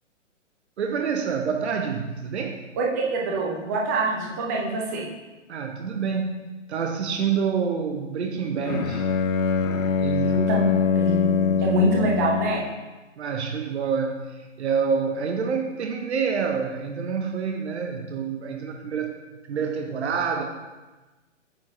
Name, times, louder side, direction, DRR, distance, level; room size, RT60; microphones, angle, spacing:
voice 1, 0.8-2.7 5.5-9.1 10.0-10.5 13.2-19.2 19.4-20.4, right 6 dB, 60° right, 4 dB, 0.6 m, -27 dB
voice 2, 2.7-5.1 10.2-12.6, right 2 dB, 15° right, -2 dB, 0.5 m, -25 dB
Bowed string instrument, 8.6-12.7, left 6 dB, 85° left, 0.5 m, -23 dB
8.5 x 4.9 x 2.5 m, 1.2 s
figure-of-eight pair, 125°, 38 cm